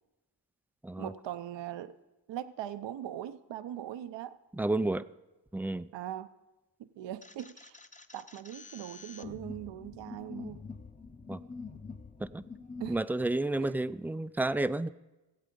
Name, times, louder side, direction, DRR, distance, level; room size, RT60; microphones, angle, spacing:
voice 1, 1.0-1.9 2.3-4.4 5.9-6.3 6.8-7.8 8.1-10.6 12.8-13.0 13.6-13.7, right 11 dB, 70° right, 12 dB, 0.7 m, -40 dB
voice 2, 4.6-5.0 5.5-5.9 11.3-11.4 12.2-12.4 12.9-14.9, right 2 dB, 5° right, 14 dB, 0.3 m, -31 dB
sound 1, 7.2-13.0, left 4 dB, 15° left, 0.7 m, -46 dB
16.5 x 8.3 x 5.2 m, 1.1 s
supercardioid pair, 60°, 46 cm